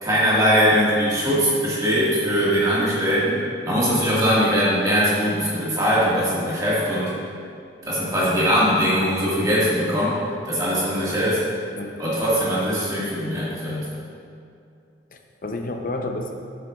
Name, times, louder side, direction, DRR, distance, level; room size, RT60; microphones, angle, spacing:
voice 1, 0.0-7.1 7.8-10.2 10.5-11.5 12.0-13.9, equal, 20° right, -8 dB, 1.7 m, -21 dB
voice 2, 15.1-16.3, left 2 dB, 50° left, 4 dB, 0.6 m, -30 dB
8.7 x 7.5 x 2.4 m, 2.4 s
head